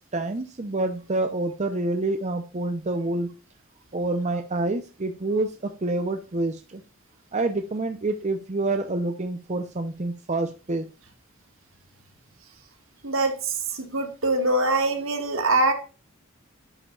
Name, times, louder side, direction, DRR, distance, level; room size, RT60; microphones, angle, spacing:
voice 1, 0.1-3.3 3.9-6.8 7.3-10.8, right 2 dB, 35° right, 6 dB, 0.7 m, -27 dB
voice 2, 13.0-15.7, right 2 dB, 70° right, 5 dB, 1.7 m, -23 dB
11.0 x 5.7 x 2.4 m, 0.34 s
head